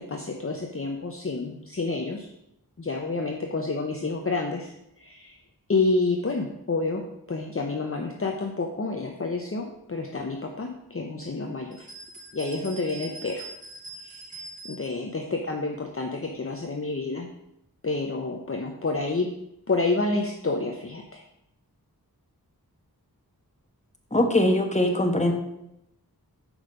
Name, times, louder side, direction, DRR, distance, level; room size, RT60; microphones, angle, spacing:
voice 1, 0.0-2.3 2.8-5.4 5.7-7.0 7.3-11.9 12.3-13.5 14.0-17.3 17.8-19.3 19.7-21.2, left 3 dB, 35° left, 2 dB, 0.7 m, -29 dB
sound 1, 11.7-15.0, right 3 dB, 20° right, 3.2 m, -43 dB
voice 2, 24.1-25.3, left 1 dB, 20° left, 4 dB, 1.1 m, -21 dB
6.3 x 5.0 x 5.1 m, 0.83 s
wide cardioid pair, 45°, 38 cm